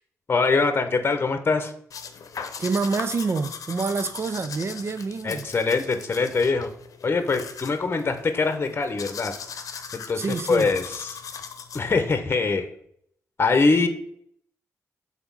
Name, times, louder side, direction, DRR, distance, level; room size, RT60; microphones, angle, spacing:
voice 1, 0.3-1.7 5.2-6.7 7.0-9.3 9.9-11.2 11.7-12.7 13.4-13.9, left 4 dB, 40° left, 1.0 m, -23 dB
sound 1, 1.9-12.1, left 6 dB, 70° left, 0.7 m, -39 dB
voice 2, 2.6-5.5 10.2-10.7, right 4 dB, 45° right, 0.5 m, -27 dB
7.0 x 4.1 x 5.5 m
cardioid pair, 80°, 6 cm